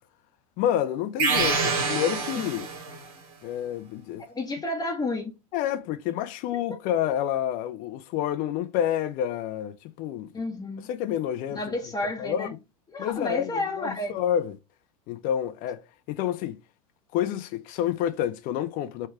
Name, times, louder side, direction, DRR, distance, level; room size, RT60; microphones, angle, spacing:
voice 1, 0.6-2.7 3.4-4.2 5.5-10.3 10.9-11.6 12.2-12.5 13.0-14.5 15.1-15.8 16.1-16.6 17.1-19.1, left 10 dB, 45° left, 0.6 m, -28 dB
sound 1, 1.2-3.1, right 4 dB, 60° right, 1.5 m, -26 dB
voice 2, 4.3-5.3 10.3-10.9 11.5-12.5 12.9-14.2, left 2 dB, 20° left, 1.0 m, -31 dB
3.3 x 3.2 x 4.7 m
hypercardioid pair, 85°, 19 cm